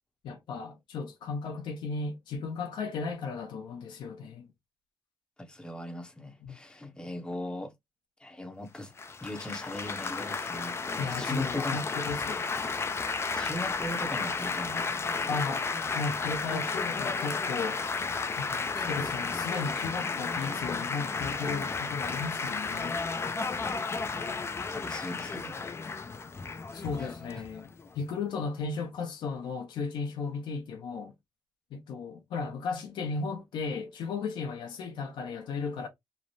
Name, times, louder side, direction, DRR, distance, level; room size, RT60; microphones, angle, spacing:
voice 1, 0.2-4.5 6.4-6.6 11.0-12.5 15.3-15.6 15.9-17.8 18.4-23.0 26.7-27.7 27.9-31.1 31.7-35.9, left 4 dB, 85° left, 0.7 m, -35 dB
voice 2, 5.4-7.7 8.2-8.9 9.2-11.8 13.3-15.5 24.2-25.6 27.0-27.1 27.3-27.5, left 1 dB, 10° left, 0.8 m, -39 dB
Laughter / Applause / Chatter, 9.0-28.1, left 4 dB, 35° left, 0.4 m, -33 dB
3.1 x 2.0 x 2.6 m
cardioid pair, 70°, 8 cm